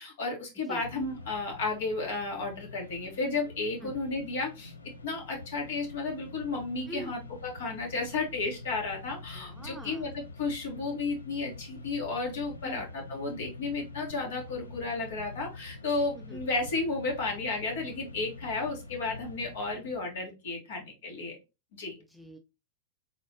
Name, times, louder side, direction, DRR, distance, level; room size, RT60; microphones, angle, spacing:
voice 1, 0.0-4.7 5.0-21.4 21.8-21.9, left 3 dB, 55° left, 0 dB, 2.2 m, -33 dB
Mechanisms, 0.8-20.3, left 3 dB, 75° left, 0.7 m, -46 dB
voice 2, 9.3-10.0 12.6-12.9 16.1-16.4 22.1-22.4, right 1 dB, ahead, 4 dB, 0.6 m, -43 dB
4.0 x 3.7 x 3.1 m, 0.26 s
figure-of-eight pair, 90°, 0 cm